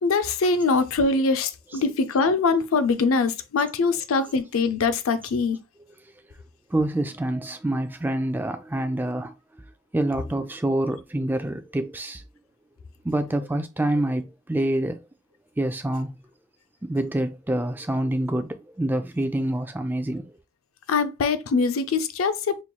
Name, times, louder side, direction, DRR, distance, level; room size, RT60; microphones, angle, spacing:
voice 1, 0.0-5.6 20.9-22.6, left 4 dB, 80° left, 0.5 m, -23 dB
voice 2, 6.7-9.3 9.9-12.2 13.0-15.0 15.6-16.2 16.8-18.5 18.8-20.3, right 1 dB, 10° right, 0.3 m, -26 dB
5.5 x 3.0 x 2.2 m
head